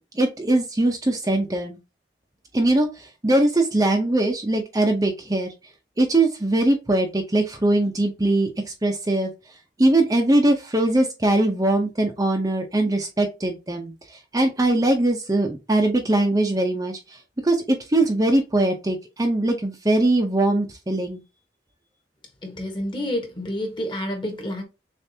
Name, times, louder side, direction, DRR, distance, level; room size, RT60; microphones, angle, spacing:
voice 1, 0.1-1.8 2.5-5.5 6.0-9.3 9.8-13.9 14.3-21.2, right 1 dB, 20° right, 0.6 m, -21 dB
voice 2, 22.4-24.6, left 1 dB, 25° left, 1.3 m, -29 dB
6.7 x 2.5 x 2.7 m
head